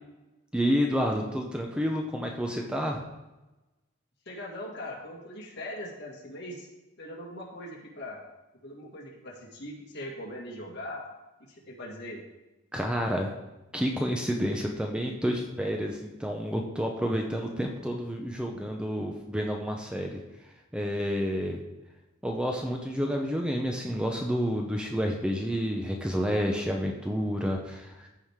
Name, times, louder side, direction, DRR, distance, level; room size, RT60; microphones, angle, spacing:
voice 1, 0.5-3.0 12.7-13.3 13.7-20.2 20.7-21.6 22.2-28.1, equal, 5° right, 1 dB, 0.6 m, -29 dB
voice 2, 4.3-6.7 7.0-8.2 8.6-11.1 11.7-12.2, left 1 dB, 55° left, -3 dB, 2.1 m, -40 dB
14.5 x 4.9 x 3.6 m, 1.0 s
head